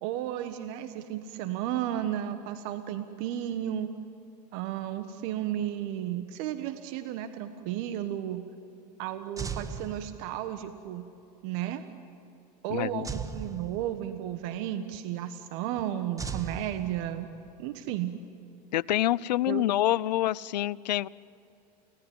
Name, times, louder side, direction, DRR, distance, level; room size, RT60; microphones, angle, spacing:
voice 1, 0.0-3.9 4.5-8.4 9.0-11.1 11.4-11.8 12.6-17.3 17.6-18.2 19.5-19.6, right 11 dB, 55° right, 9 dB, 1.5 m, -33 dB
sound 1, 9.4-10.6 13.0-14.3 16.2-17.5, right 5 dB, 15° right, 1.4 m, -38 dB
voice 2, 12.7-13.1 18.7-21.1, left 14 dB, 80° left, 22 dB, 0.6 m, -27 dB
29.5 x 18.0 x 9.6 m, 2.7 s
hypercardioid pair, 100°, 21 cm